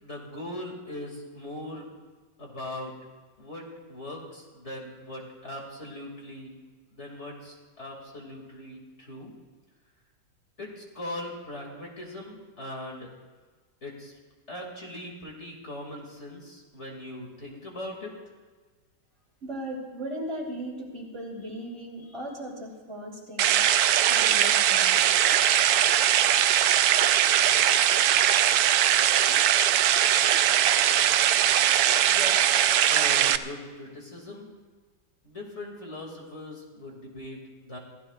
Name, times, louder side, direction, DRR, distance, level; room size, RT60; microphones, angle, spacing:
voice 1, 0.0-1.8 2.4-2.9 3.4-6.5 6.9-9.3 10.6-13.1 13.8-14.1 14.5-18.1 32.0-34.5 35.2-37.8, left 1 dB, 40° left, -1 dB, 2.6 m, -40 dB
voice 2, 19.4-25.0, equal, 40° right, -2 dB, 3.1 m, -38 dB
sound 1, 23.4-33.4, right 11 dB, 70° right, 1.0 m, -21 dB
27.0 x 15.5 x 2.4 m, 1.4 s
omnidirectional pair, 1.9 m